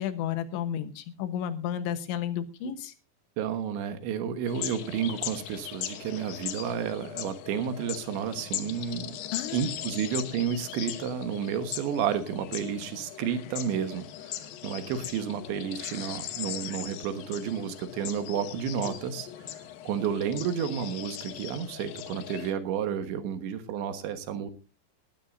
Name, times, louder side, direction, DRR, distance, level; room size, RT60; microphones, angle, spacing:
voice 1, 0.0-2.9 9.3-9.6, left 10 dB, 85° left, 11 dB, 3.5 m, -32 dB
voice 2, 3.4-9.2 9.5-19.3 19.9-24.5, right 8 dB, 80° right, 9 dB, 3.6 m, -31 dB
sound 1, 4.5-22.5, left 11 dB, 70° left, 2.4 m, -39 dB
19.0 x 13.0 x 2.6 m, 0.30 s
omnidirectional pair, 5.2 m